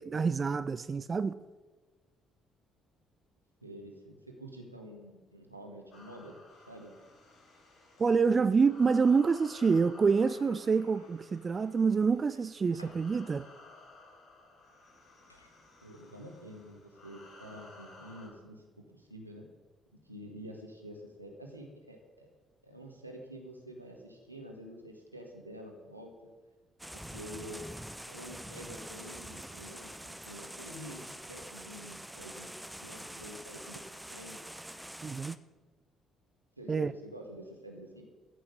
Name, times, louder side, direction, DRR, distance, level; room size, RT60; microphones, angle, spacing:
voice 1, 0.0-1.3 8.0-13.5 35.0-35.4 36.7-36.9, right 5 dB, 30° right, 14 dB, 0.5 m, -27 dB
voice 2, 3.6-6.4 6.7-6.9 15.8-19.5 20.0-22.3 22.6-26.1 26.9-27.7 28.1-32.5 32.8-34.4 36.6-38.1, equal, 90° right, 1 dB, 1.8 m, -48 dB
sound 1, 5.9-18.3, left 3 dB, 50° left, 4.6 m, -55 dB
sound 2, 9.5-11.2 12.3-13.1 15.3-15.6, left 2 dB, 85° left, 1.1 m, -57 dB
sound 3, 26.8-35.4, right 1 dB, 5° right, 0.8 m, -45 dB
14.5 x 6.3 x 9.7 m, 1.3 s
figure-of-eight pair, 45°, 0 cm